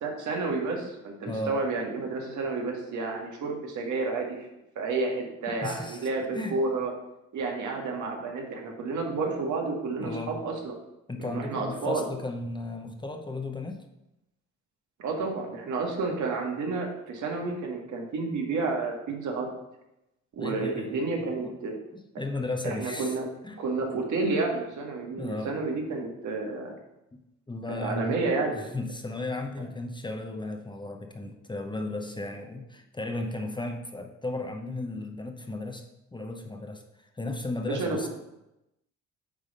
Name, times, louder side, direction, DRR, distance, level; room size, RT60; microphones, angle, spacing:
voice 1, 0.0-4.4 4.8-6.9 7.3-10.7 11.2-12.1 15.0-19.5 20.3-21.7 22.6-23.3 23.6-26.7 27.8-28.6 37.7-38.1, right 3 dB, 75° right, 1 dB, 1.8 m, -30 dB
voice 2, 1.3-1.6 5.6-6.1 6.3-6.6 10.0-10.4 11.1-13.8 20.4-21.0 21.4-21.5 21.9-23.1 23.4-23.6 25.2-25.6 26.6-26.8 27.5-28.2 28.5-35.8 36.1-36.8 37.2-38.1, left 2 dB, 15° left, 4 dB, 0.8 m, -35 dB
9.2 x 3.5 x 5.4 m, 0.90 s
cardioid pair, 90°, 30 cm